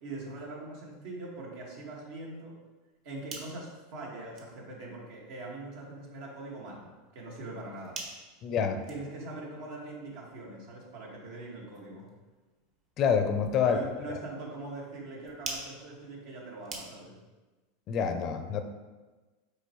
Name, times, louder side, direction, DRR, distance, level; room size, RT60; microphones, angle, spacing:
voice 1, 0.0-2.5 3.0-8.0 8.9-12.1 13.6-17.2, right 2 dB, 70° right, -3 dB, 2.0 m, -42 dB
sound 1, 2.9-17.3, right 3 dB, 45° right, 1.5 m, -49 dB
voice 2, 8.4-8.8 13.0-13.8 14.1-14.2 17.9-18.6, left 6 dB, 45° left, 8 dB, 0.6 m, -27 dB
6.7 x 4.7 x 3.1 m, 1.2 s
hypercardioid pair, 100°, 0 cm